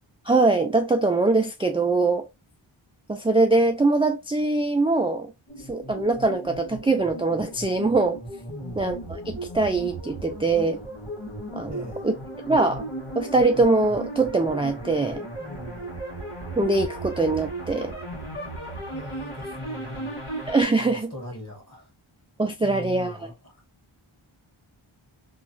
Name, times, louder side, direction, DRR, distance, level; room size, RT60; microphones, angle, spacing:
voice 1, 0.3-2.3 3.1-5.3 5.7-8.2 8.8-10.8 11.5-11.8 12.0-12.1 12.5-12.9 13.2-15.3 16.6-17.9 20.5-21.1 22.4-23.2, right 3 dB, 10° right, 0.3 m, -22 dB
sound 1, 5.5-20.6, right 1 dB, 80° left, 1.5 m, -36 dB
voice 2, 8.5-8.9 11.7-12.1 15.4-15.9 18.9-20.1 20.8-21.9 22.6-23.6, left 1 dB, 30° left, 1.4 m, -40 dB
3.0 x 2.3 x 2.4 m
wide cardioid pair, 45°, 50 cm